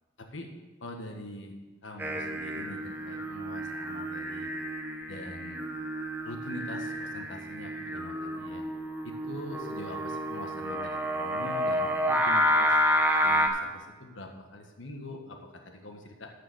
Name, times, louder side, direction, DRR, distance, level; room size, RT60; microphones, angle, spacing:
voice 1, 0.2-0.5 0.8-1.6 1.8-4.5 5.1-5.7 6.2-8.6 9.0-12.8 13.2-16.3, left 1 dB, 75° left, 3 dB, 1.5 m, -43 dB
Singing, 2.0-13.5, equal, 10° right, 0.9 m, -30 dB
13.0 x 5.1 x 6.4 m, 1.3 s
head